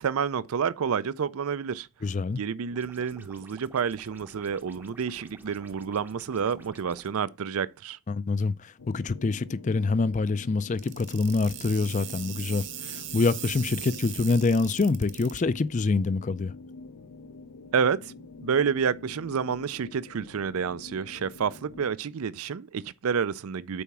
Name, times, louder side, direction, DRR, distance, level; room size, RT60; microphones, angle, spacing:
voice 1, 0.0-1.9 2.3-8.0 17.7-18.1 18.4-23.8, right 6 dB, 80° right, 0.4 m, -29 dB
voice 2, 2.0-2.4 8.1-16.6, left 3 dB, 35° left, 0.4 m, -26 dB
sound 1, 2.7-7.1, right 1 dB, 10° right, 0.6 m, -51 dB
sound 2, 8.8-21.9, left 4 dB, 85° left, 0.6 m, -47 dB
sound 3, 10.8-15.4, right 12 dB, 55° right, 1.1 m, -39 dB
7.0 x 4.7 x 5.9 m
head